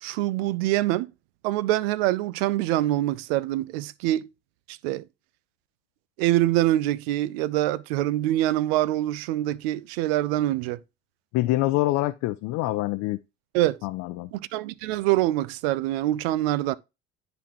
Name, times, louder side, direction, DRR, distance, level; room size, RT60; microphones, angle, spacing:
voice 1, 0.0-1.1 1.4-4.3 4.7-5.0 6.2-10.8 13.5-13.8 14.3-16.8, right 15 dB, 85° right, 0.5 m, -25 dB
voice 2, 11.3-13.2 13.8-14.3, left 17 dB, 70° left, 0.6 m, -25 dB
10.0 x 4.1 x 2.9 m
supercardioid pair, 85°, 29 cm